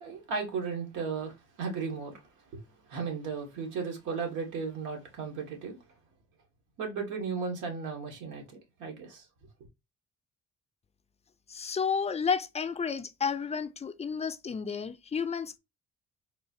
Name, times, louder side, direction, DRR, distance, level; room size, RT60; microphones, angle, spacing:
voice 1, 0.0-2.2 2.5-2.6 2.9-5.8 6.8-8.4 8.8-9.3, right 5 dB, 90° right, 1.4 m, -35 dB
voice 2, 11.5-15.6, left 6 dB, 20° left, 0.4 m, -31 dB
3.8 x 2.4 x 2.7 m
cardioid pair, 90°, 30 cm